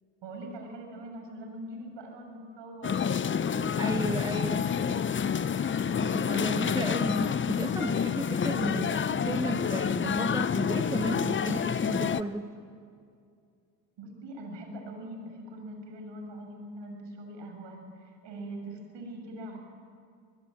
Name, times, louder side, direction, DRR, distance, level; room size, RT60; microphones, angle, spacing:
voice 1, 0.2-3.1 3.5-4.4 4.7-5.0 14.0-19.6, right 1 dB, 60° right, 3 dB, 6.6 m, -42 dB
sound 1, 2.8-12.2, left 7 dB, 25° left, 0.7 m, -28 dB
voice 2, 3.8-4.6 6.0-12.5, right 2 dB, 10° right, 7 dB, 1.2 m, -34 dB
24.5 x 20.5 x 7.7 m, 2.3 s
supercardioid pair, 70°, 49 cm